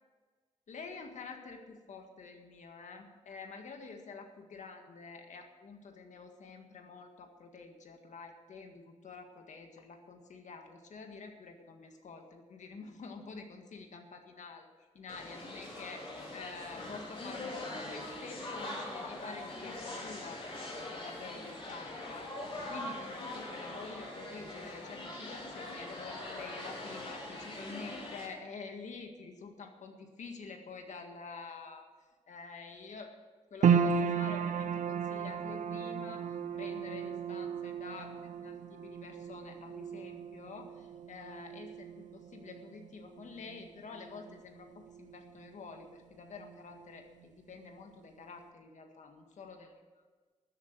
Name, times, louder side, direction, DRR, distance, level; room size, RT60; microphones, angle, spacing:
voice 1, 0.7-14.7 14.9-20.5 20.7-22.3 22.7-31.9 32.3-33.1 33.5-49.7, left 4 dB, 75° left, 4 dB, 1.8 m, -48 dB
sound 1, 15.1-28.3, left 1 dB, 45° left, 3.9 m, -42 dB
sound 2, 33.6-46.0 46.3-47.2 47.7-47.8, right 7 dB, 80° right, 0.7 m, -35 dB
13.0 x 8.0 x 8.1 m, 1.4 s
wide cardioid pair, 170°, 12 cm